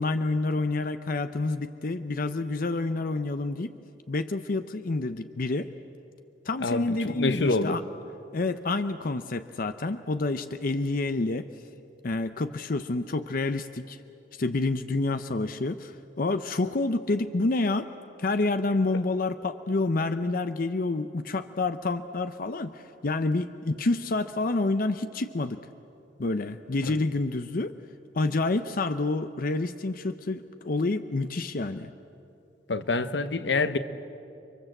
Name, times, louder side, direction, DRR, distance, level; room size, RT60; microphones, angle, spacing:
voice 1, 0.0-3.7 4.1-5.7 6.5-7.8 8.3-11.5 12.0-14.0 14.3-17.9 18.2-25.7 26.2-27.7 28.1-31.9, left 2 dB, 55° left, 0.7 m, -28 dB
voice 2, 6.6-7.8 26.9-27.0 32.7-33.8, left 3 dB, 80° left, 1.0 m, -26 dB
30.0 x 23.5 x 7.9 m
head